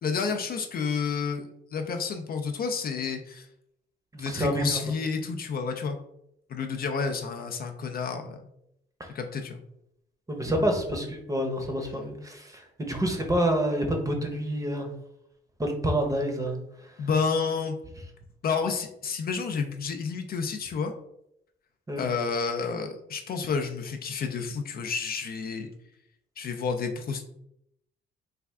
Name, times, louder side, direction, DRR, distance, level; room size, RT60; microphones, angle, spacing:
voice 1, 0.0-3.5 4.2-6.0 6.5-8.4 9.1-9.6 17.0-17.7 18.4-20.9 22.0-25.7 26.4-27.2, left 5 dB, 50° left, 5 dB, 0.4 m, -30 dB
voice 2, 4.1-4.8 9.0-9.1 10.3-14.9 15.6-16.6 21.9-22.0, right 1 dB, 15° right, 3 dB, 0.7 m, -28 dB
3.3 x 2.3 x 3.5 m, 0.77 s
cardioid pair, 90°, 20 cm